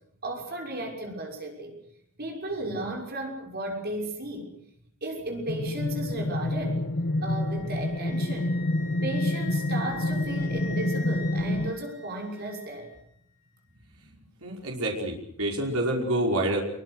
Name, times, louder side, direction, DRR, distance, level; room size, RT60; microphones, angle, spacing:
voice 1, 0.2-1.8 2.2-4.5 5.0-6.9 7.2-8.6 9.0-12.9, right 1 dB, 45° right, 2 dB, 6.2 m, -34 dB
sound 1, 5.5-11.7, left 1 dB, 55° left, 1.5 m, -28 dB
Wind instrument woodwind instrument, 7.1-13.1, left 6 dB, 40° left, 7.7 m, -44 dB
voice 2, 14.4-16.6, right 1 dB, 75° right, 0 dB, 5.5 m, -27 dB
25.0 x 23.5 x 6.5 m, 0.70 s
head